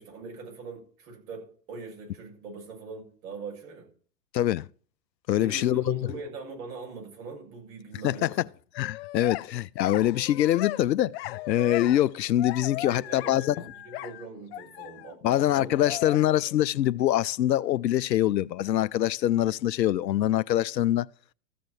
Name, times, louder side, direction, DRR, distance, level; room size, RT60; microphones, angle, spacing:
voice 1, 0.0-3.9 5.4-8.3 12.9-15.8 16.1-16.2, right 4 dB, 60° right, 6.9 m, -42 dB
voice 2, 4.3-4.7 5.3-6.0 8.0-8.4 8.8-13.6 15.2-21.1, left 13 dB, 85° left, 0.6 m, -24 dB
sound 1, 8.7-9.5 9.8-10.8 11.1-12.1 12.4-15.2 15.7-16.5, left 16 dB, 40° left, 0.4 m, -38 dB
14.5 x 5.1 x 7.7 m
hypercardioid pair, 110°, 49 cm